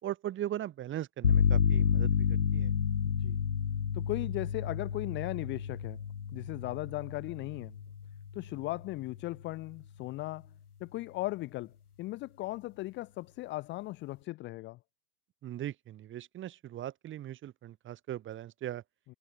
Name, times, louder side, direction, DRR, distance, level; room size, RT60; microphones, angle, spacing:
voice 1, 0.0-2.1 2.5-2.7 15.4-18.8, right 12 dB, 25° right, 4.4 m, -39 dB
sound 1, 1.2-9.0, left 7 dB, 90° left, 1.9 m, -30 dB
voice 2, 3.0-3.4 3.9-6.0 6.3-7.8 8.3-10.5 10.8-11.7 12.0-14.8, left 19 dB, 25° left, 0.8 m, -37 dB
hypercardioid pair, 115°, 44 cm